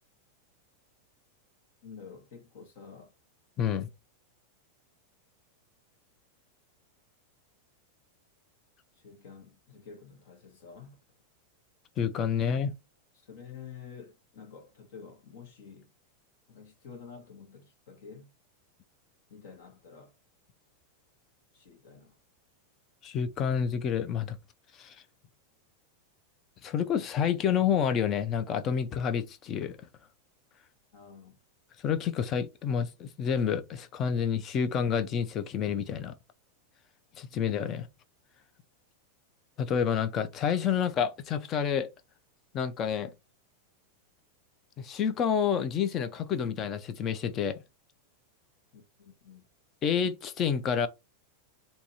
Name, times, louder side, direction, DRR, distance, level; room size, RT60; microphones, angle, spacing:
voice 1, 1.8-3.1 8.9-11.0 13.2-15.9 16.5-18.3 19.3-20.1 21.5-22.2 30.9-31.4 48.7-49.5, left 6 dB, 55° left, 1.3 m, -49 dB
voice 2, 3.6-3.9 12.0-12.7 23.0-24.4 24.8-25.0 26.6-29.8 31.8-36.1 37.2-37.9 39.6-41.9 42.5-43.1 44.8-47.6 49.8-50.9, left 7 dB, 25° left, 0.4 m, -29 dB
2.9 x 2.7 x 4.0 m
supercardioid pair, 170°, 0 cm